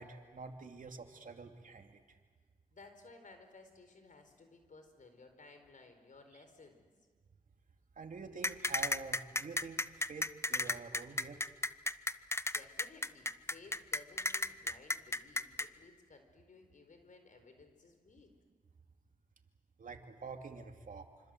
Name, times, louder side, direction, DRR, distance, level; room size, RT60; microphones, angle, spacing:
voice 1, 0.0-2.0 8.0-11.4 19.8-21.1, right 4 dB, 65° right, 4 dB, 2.8 m, -47 dB
voice 2, 2.7-6.8 12.4-18.3, left 3 dB, 60° left, 7 dB, 4.4 m, -58 dB
sound 1, 8.4-15.7, left 2 dB, 15° left, 0.8 m, -33 dB
26.0 x 26.0 x 7.9 m, 1.5 s
cardioid pair, 60°, 15 cm